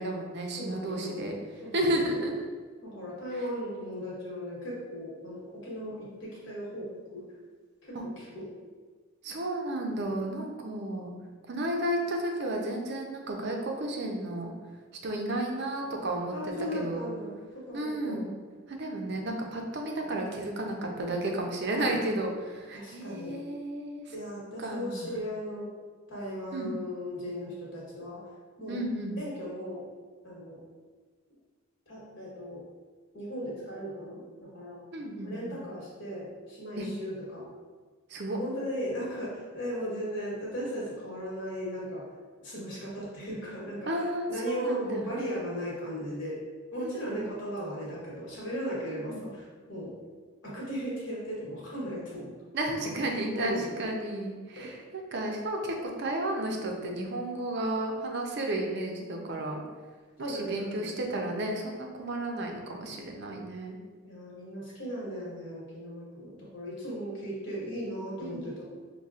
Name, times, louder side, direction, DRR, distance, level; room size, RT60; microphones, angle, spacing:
voice 1, 0.0-1.3 1.7-2.5 7.9-8.0 9.2-11.1 11.5-14.5 15.0-17.1 17.7-18.3 18.7-24.0 24.6-25.1 26.5-26.7 28.7-29.2 34.9-35.5 36.8-36.9 38.1-38.4 43.9-45.0 46.8-47.3 48.8-49.2 52.5-59.6 60.2-63.8 68.2-68.4, right 1 dB, 55° right, 1 dB, 0.5 m, -33 dB
voice 2, 0.6-2.2 2.8-7.2 7.9-8.5 10.1-10.2 16.3-18.2 21.9-22.0 22.7-23.4 24.1-25.7 26.1-28.3 28.6-28.8 29.2-29.8 30.2-30.6 31.9-32.6 33.1-34.8 35.2-37.5 38.2-42.0 42.4-44.0 44.3-46.4 46.7-49.9 50.4-52.3 52.8-53.0 53.3-53.8 54.6-54.7 60.2-61.0 64.0-68.8, equal, 60° left, -6 dB, 1.2 m, -37 dB
5.4 x 2.2 x 2.4 m, 1.5 s
head